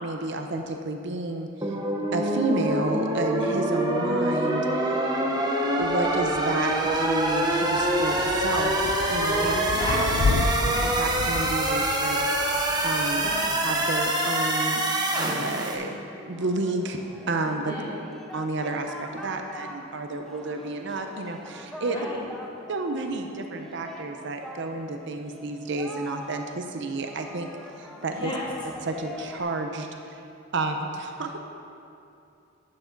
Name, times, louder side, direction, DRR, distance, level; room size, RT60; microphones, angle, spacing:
voice 1, 0.0-1.7 2.1-5.3 5.8-9.6 11.0-12.2 12.8-13.3 13.6-14.8 15.1-15.9 16.2-17.0 17.3-17.7 18.3-22.1 22.7-27.5 27.8-28.3 28.8-29.9 30.5-31.4, right 2 dB, 65° right, 4 dB, 0.7 m, -30 dB
sound 1, 1.6-15.8, right 1 dB, 20° right, 1.0 m, -25 dB
Thunder / Rain, 5.8-14.1, left 3 dB, 70° left, 0.4 m, -32 dB
voice 2, 9.4-10.3 10.7-10.8 13.1-13.5 15.7-15.8 17.6-17.9 21.9-22.2 28.1-28.5, left 1 dB, 25° left, -7 dB, 2.7 m, -34 dB
Singing, 16.3-29.4, left 1 dB, ahead, 0.8 m, -43 dB
11.5 x 8.7 x 4.0 m, 2.6 s
head